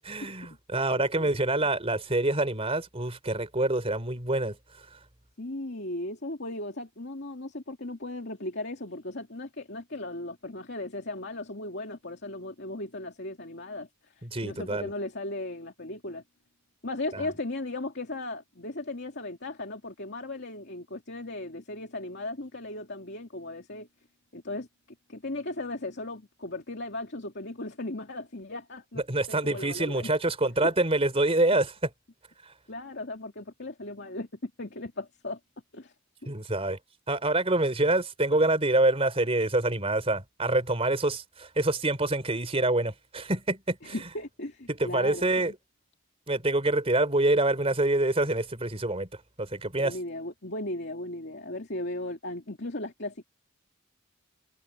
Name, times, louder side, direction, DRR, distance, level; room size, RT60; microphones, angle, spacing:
voice 1, 0.1-4.6 14.2-14.9 17.1-17.3 29.1-31.9 36.3-36.8 37.1-44.0 44.7-45.5 46.3-49.1 49.4-50.0, right 2 dB, 30° right, 3.9 m, -26 dB
voice 2, 1.0-1.3 5.4-13.9 14.2-16.2 16.8-23.9 24.3-24.7 25.1-30.1 30.6-30.7 32.7-35.4 35.7-35.9 43.8-45.5 49.8-53.2, left 2 dB, 55° left, 2.6 m, -37 dB
head